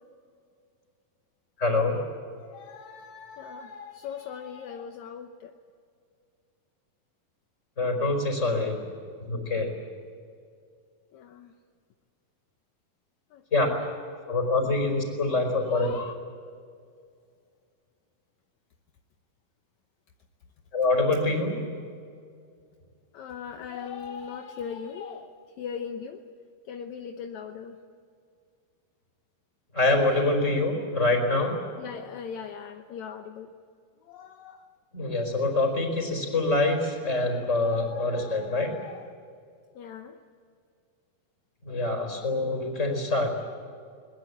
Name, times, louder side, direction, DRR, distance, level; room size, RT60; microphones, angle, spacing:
voice 1, 1.6-2.0 7.8-8.8 9.3-9.7 13.5-13.7 14.3-15.9 20.7-21.5 29.7-31.6 34.9-38.7 41.6-43.3, left 2 dB, 20° left, 4 dB, 4.7 m, -25 dB
voice 2, 2.4-5.5 11.1-11.5 13.3-13.8 15.7-16.1 23.1-26.2 26.7-27.8 30.0-30.2 31.8-33.5 34.0-34.7 37.6-39.2 39.8-40.2, left 7 dB, 70° left, 5 dB, 1.9 m, -40 dB
23.0 x 21.0 x 8.6 m, 2.3 s
omnidirectional pair, 4.2 m